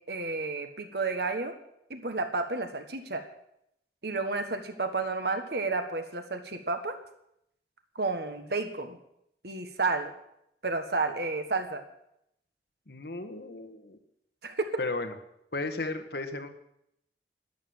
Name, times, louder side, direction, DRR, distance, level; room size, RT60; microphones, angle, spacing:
voice 1, 0.1-1.5 1.9-3.2 4.0-6.9 7.9-9.0 9.4-10.1 10.6-11.8 14.4-14.7, right 3 dB, 65° right, 7 dB, 1.5 m, -31 dB
voice 2, 12.9-14.0 14.8-15.1 15.5-16.5, left 2 dB, 65° left, 7 dB, 1.6 m, -34 dB
12.5 x 11.0 x 7.9 m, 0.77 s
head